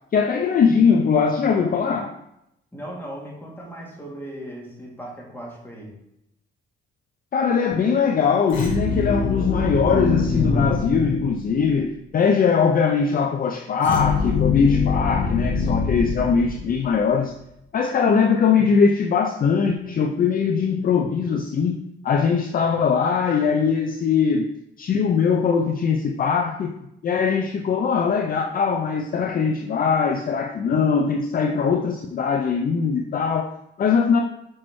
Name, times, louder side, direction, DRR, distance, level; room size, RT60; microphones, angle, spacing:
voice 1, 0.1-2.2 7.3-17.3 17.7-24.5 24.8-26.8 27.0-34.2, left 6 dB, 45° left, 3 dB, 0.5 m, -21 dB
voice 2, 2.7-5.9, right 1 dB, 10° left, -3 dB, 2.5 m, -37 dB
sound 1, 8.5-11.8 13.8-17.1, left 4 dB, 70° left, 1.6 m, -24 dB
6.1 x 5.8 x 3.1 m, 0.82 s
cardioid pair, 90°, 20 cm